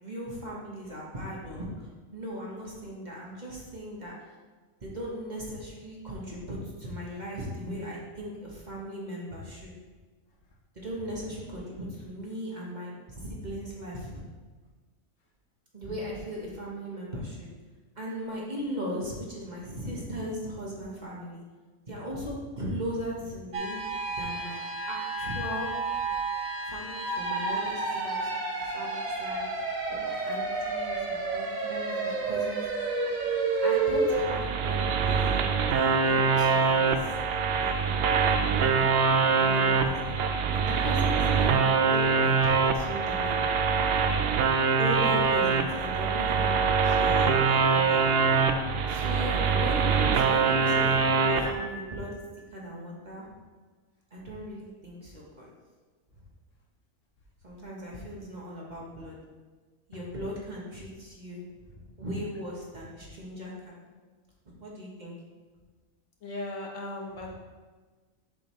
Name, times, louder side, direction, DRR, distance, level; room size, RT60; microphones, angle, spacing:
voice 1, 0.0-4.1 4.8-9.7 10.7-14.2 15.7-17.5 18.0-21.4 21.9-23.9 24.2-24.6 24.9-25.8 26.6-29.5 29.9-32.7 33.6-38.0 38.3-38.9 39.3-40.1 40.5-43.4 44.8-48.1 48.9-52.2 52.5-53.2 54.1-55.5 57.4-59.2 59.9-61.4 61.7-63.8 64.6-65.1 67.2-67.3, equal, 35° right, -4 dB, 1.3 m, -38 dB
sound 1, 23.5-34.2, right 3 dB, 85° right, 1.4 m, -30 dB
sound 2, 34.1-51.5, right 5 dB, 60° right, 0.7 m, -24 dB
Piano, 51.4-52.7, left 1 dB, 30° left, 0.7 m, -43 dB
voice 2, 66.2-67.3, left 2 dB, 70° left, -1 dB, 1.4 m, -37 dB
7.0 x 6.2 x 3.1 m, 1.4 s
omnidirectional pair, 1.4 m